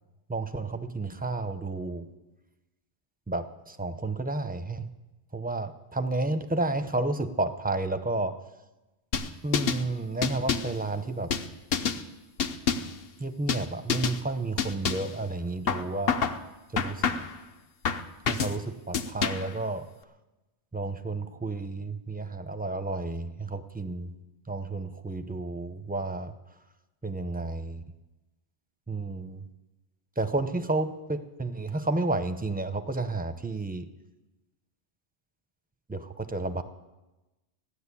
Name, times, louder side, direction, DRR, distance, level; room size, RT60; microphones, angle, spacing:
voice 1, 0.3-2.1 3.3-4.9 5.3-8.3 9.4-11.3 13.2-16.1 16.7-17.2 18.3-19.9 20.7-24.1 24.5-26.3 27.0-27.8 28.9-29.4 30.2-33.8 35.9-36.6, right 2 dB, 10° right, 9 dB, 0.6 m, -31 dB
sound 1, 9.1-9.8 10.2-10.8 11.3-12.0 12.4-13.0 13.5-13.6 13.9-14.2 14.6-15.1 15.7-16.4 16.8-17.4 17.8-18.6 18.9-19.5, left 6 dB, 60° left, 1.0 m, -28 dB
14.5 x 10.0 x 8.4 m, 1.1 s
omnidirectional pair, 1.2 m